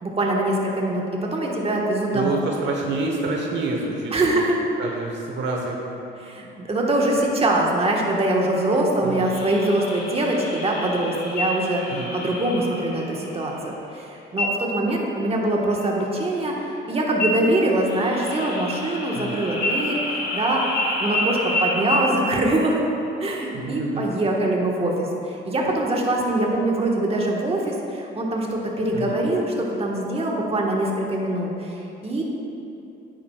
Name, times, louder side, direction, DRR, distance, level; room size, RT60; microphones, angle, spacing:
voice 1, 0.0-2.4 4.1-4.5 6.2-11.8 12.1-20.7 21.0-22.8 23.2-31.7 32.0-32.2, right 1 dB, 30° right, -2 dB, 1.3 m, -23 dB
voice 2, 2.1-4.4 4.8-5.8 9.0-9.3 11.9-12.2 19.1-19.4 23.5-24.1 28.9-29.2, right 3 dB, 65° right, 0 dB, 1.1 m, -28 dB
sound 1, 9.1-13.9 17.7-22.5, left 2 dB, 70° left, 1.8 m, -33 dB
sound 2, 11.4-12.0 12.4-12.5 13.1-13.6 14.3-14.8 15.2-15.5 15.8-16.9 17.2-19.2 19.6-20.4 20.8-20.9 21.1-21.2 21.5-21.6 21.9-22.0, left 2 dB, 45° left, 1.5 m, -28 dB
10.5 x 8.9 x 2.3 m, 2.8 s
cardioid pair, 90°, 20 cm